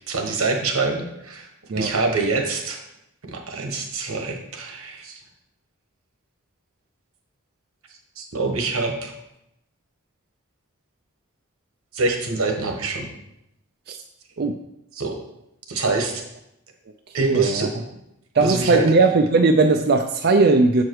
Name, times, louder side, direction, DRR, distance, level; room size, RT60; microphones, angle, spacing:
voice 1, 0.1-1.5 1.8-2.8 3.3-5.2 8.2-9.1 11.9-13.1 14.9-15.2 15.7-16.2 17.1-17.7 18.4-18.9, right 3 dB, 90° right, 3 dB, 1.3 m, -25 dB
voice 2, 17.2-17.7 18.3-20.8, right 3 dB, 50° right, 5 dB, 0.4 m, -18 dB
7.2 x 4.8 x 4.6 m, 0.82 s
head